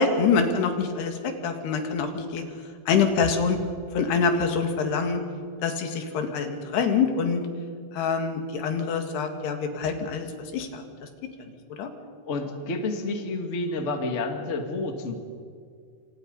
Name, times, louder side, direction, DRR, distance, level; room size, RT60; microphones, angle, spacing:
voice 1, 0.0-2.4 2.9-3.6 4.0-5.2 5.6-7.5 7.9-10.3 10.5-11.1 11.7-11.9, left 5 dB, 80° left, 5 dB, 4.0 m, -25 dB
voice 2, 12.3-15.1, left 2 dB, 25° left, 4 dB, 1.6 m, -29 dB
28.0 x 26.5 x 5.4 m, 2.2 s
omnidirectional pair, 4.6 m